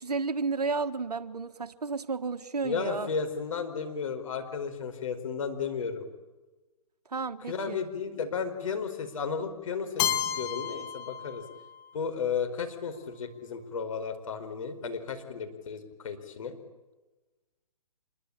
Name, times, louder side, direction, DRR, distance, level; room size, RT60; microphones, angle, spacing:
voice 1, 0.0-3.1 7.1-7.8, right 4 dB, 70° right, 11 dB, 1.6 m, -32 dB
voice 2, 2.6-6.0 7.5-11.4 11.9-16.6, left 6 dB, 55° left, 6 dB, 4.7 m, -34 dB
Keyboard (musical), 10.0-11.9, left 10 dB, 15° left, 0.8 m, -32 dB
27.0 x 22.5 x 8.8 m, 1.2 s
figure-of-eight pair, 135°, 21 cm